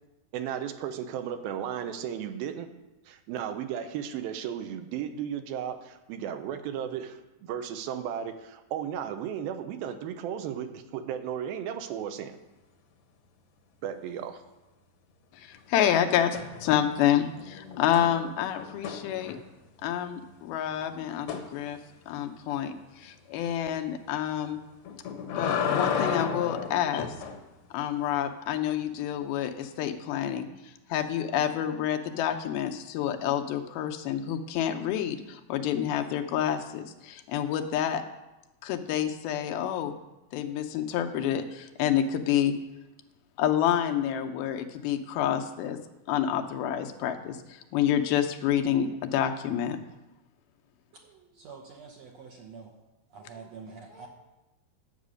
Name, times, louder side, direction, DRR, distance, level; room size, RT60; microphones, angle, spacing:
voice 1, 0.3-2.7 3.1-12.4 13.8-14.4, right 9 dB, 85° right, 9 dB, 2.6 m, -35 dB
voice 2, 15.3-19.4 19.8-21.8 22.1-24.6 25.3-27.2 27.7-38.0 38.6-40.0 40.3-42.6 43.4-45.8 46.1-49.8, left 10 dB, 90° left, 6 dB, 2.7 m, -28 dB
sound 1, 16.3-17.0 17.3-19.7 21.3-21.5 24.8-27.4 29.6-29.7, left 6 dB, 65° left, 1.5 m, -32 dB
voice 3, 51.0-52.7 53.1-54.1, right 5 dB, 70° right, 1 dB, 1.7 m, -46 dB
10.5 x 8.3 x 6.3 m, 1.0 s
omnidirectional pair, 4.2 m